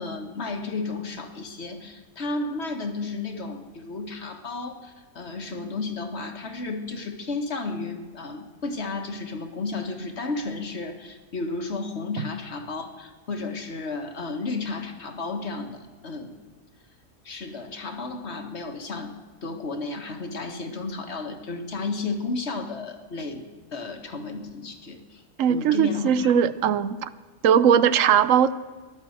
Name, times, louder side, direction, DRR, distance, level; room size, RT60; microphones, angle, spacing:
voice 1, 0.0-16.4 17.2-19.1 19.4-23.4 23.7-25.2 25.5-26.3, left 3 dB, 60° left, 1.7 m, -33 dB
voice 2, 25.4-27.1 27.4-28.5, right 8 dB, 90° right, 1.1 m, -19 dB
15.0 x 11.5 x 7.9 m
omnidirectional pair, 1.3 m